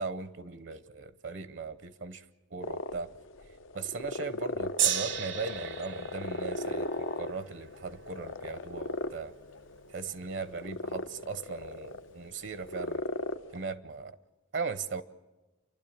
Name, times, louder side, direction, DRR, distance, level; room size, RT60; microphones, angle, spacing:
voice 1, 0.0-2.2 2.5-3.1 3.7-9.3 9.9-13.2 13.5-14.2 14.5-15.0, right 4 dB, 65° right, 14 dB, 0.9 m, -38 dB
sound 1, 2.6-13.7, left 2 dB, 85° left, 0.8 m, -38 dB
Gong, 4.8-11.1 11.9-12.0, right 10 dB, 85° right, 1.5 m, -36 dB
28.5 x 12.0 x 8.7 m, 1.1 s
head